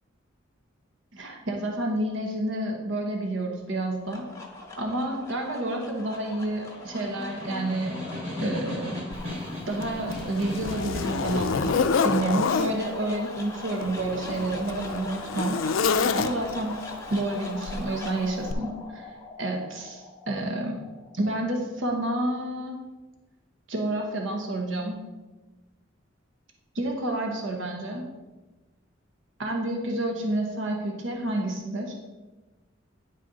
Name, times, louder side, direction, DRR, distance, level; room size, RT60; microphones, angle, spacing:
voice 1, 1.1-4.3 4.8-8.0 8.4-8.9 9.7-15.6 16.1-16.8 17.1-19.1 19.4-20.8 21.1-22.8 23.7-25.0 26.7-28.1 29.4-31.9, right 1 dB, 70° right, 1 dB, 0.9 m, -29 dB
sound 1, 3.8-22.1, left 3 dB, 15° left, 1.1 m, -41 dB
Snare drum, 6.7-11.6, left 1 dB, 30° right, 1.8 m, -36 dB
Zipper (clothing), 9.1-9.2 9.8-12.8 13.7-16.7 17.7-17.9 18.5-18.6, left 5 dB, 85° left, 0.4 m, -27 dB
10.0 x 4.2 x 3.8 m, 1.2 s
head